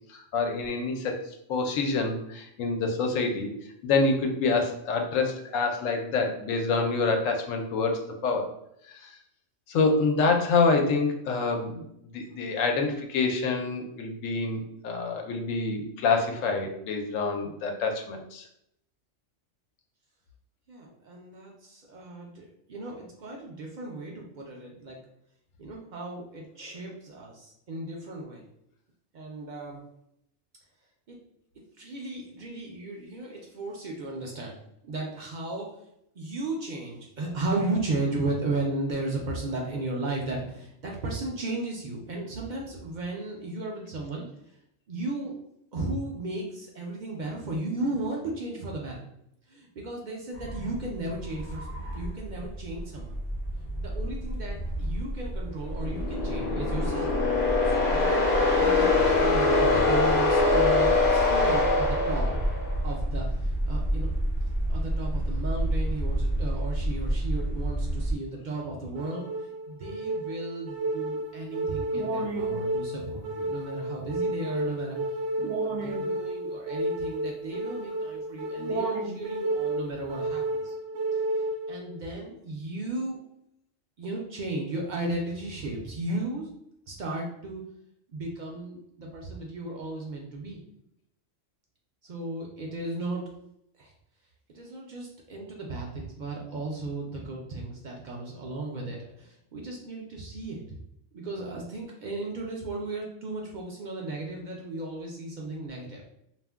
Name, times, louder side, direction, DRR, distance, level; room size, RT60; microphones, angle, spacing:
voice 1, 0.1-3.5 3.8-8.5 8.9-9.1 9.7-11.8 12.1-18.5, left 4 dB, 85° left, 3 dB, 1.0 m, -27 dB
voice 2, 20.7-25.0 25.6-28.5 29.1-29.9 31.1-31.2 31.8-34.6 34.8-35.8 36.2-44.3 44.9-45.3 45.7-49.0 49.5-51.7 51.9-53.2 53.8-57.1 57.4-62.3 62.8-64.2 64.7-75.0 75.4-80.7 81.3-83.2 84.0-86.5 86.9-87.6 88.1-90.6 92.0-93.2 93.8-93.9 94.5-100.6 101.1-106.0, right 2 dB, 60° right, -1 dB, 0.5 m, -35 dB
sound 1, 50.3-68.1, right 1 dB, 30° left, 0.5 m, -31 dB
sound 2, 55.8-62.8, left 3 dB, 60° left, 0.9 m, -23 dB
sound 3, 68.9-81.9, right 2 dB, 75° right, 0.9 m, -31 dB
2.4 x 2.1 x 3.4 m, 0.77 s
omnidirectional pair, 1.3 m